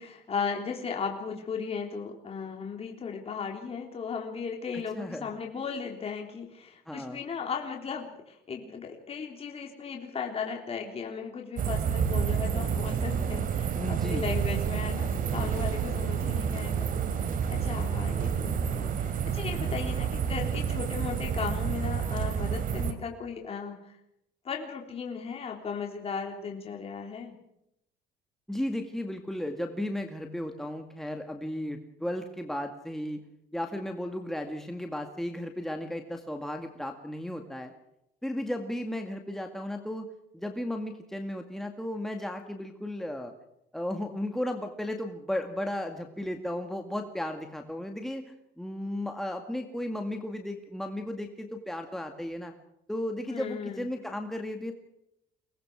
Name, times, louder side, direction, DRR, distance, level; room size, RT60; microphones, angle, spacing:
voice 1, 0.0-16.9 17.5-23.8 24.4-27.4 53.3-53.9, left 6 dB, 35° left, 1 dB, 3.6 m, -36 dB
voice 2, 4.7-5.3 6.9-7.2 13.7-14.2 16.2-16.3 28.5-33.2 33.5-37.7 38.2-40.1 40.3-43.3 43.7-48.2 48.6-52.5 52.9-54.7, left 1 dB, ahead, 4 dB, 2.0 m, -35 dB
sound 1, 11.6-22.9, right 7 dB, 55° right, 2.8 m, -29 dB
24.5 x 19.5 x 6.3 m, 0.81 s
cardioid pair, 110°, 17 cm